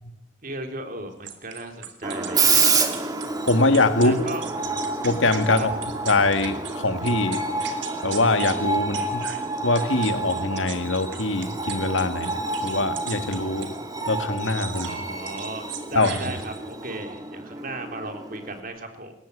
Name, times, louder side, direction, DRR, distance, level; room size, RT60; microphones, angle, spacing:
voice 1, 0.4-2.6 4.0-4.4 5.5-5.7 14.8-19.1, right 2 dB, 45° right, 5 dB, 3.6 m, -35 dB
sound 1, 1.3-6.8 7.1-8.6 8.9-13.8 14.4-15.0 15.3-16.7, right 9 dB, 65° right, 3.5 m, -38 dB
Screech, 2.0-18.6, right 4 dB, 20° right, 2.3 m, -28 dB
voice 2, 3.4-4.1 5.0-5.7 6.1-7.5 8.0-9.2 9.6-13.7 14.1-14.9 16.0-16.1, left 2 dB, 75° left, 8 dB, 1.9 m, -23 dB
28.5 x 15.5 x 9.7 m, 0.81 s
head